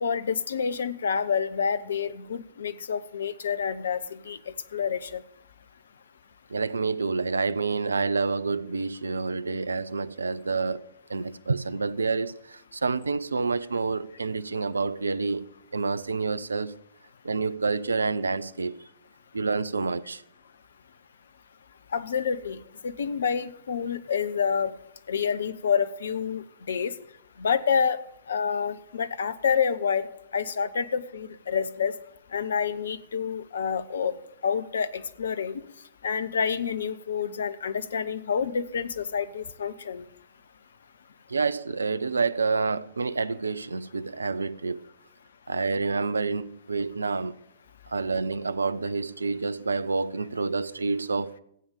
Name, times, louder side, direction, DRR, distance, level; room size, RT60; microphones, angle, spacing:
voice 1, 0.0-5.2 21.9-22.6 22.8-24.7 25.1-26.9 27.4-28.0 28.3-30.1 30.3-31.9 32.3-34.1 34.4-35.6 36.0-40.1, left 6 dB, 65° left, 0.8 m, -28 dB
voice 2, 6.5-16.8 17.2-18.8 19.3-20.2 41.3-44.8 45.5-47.3 47.9-51.4, right 4 dB, 75° right, 0.5 m, -28 dB
15.0 x 8.7 x 6.8 m
figure-of-eight pair, 105°, 0 cm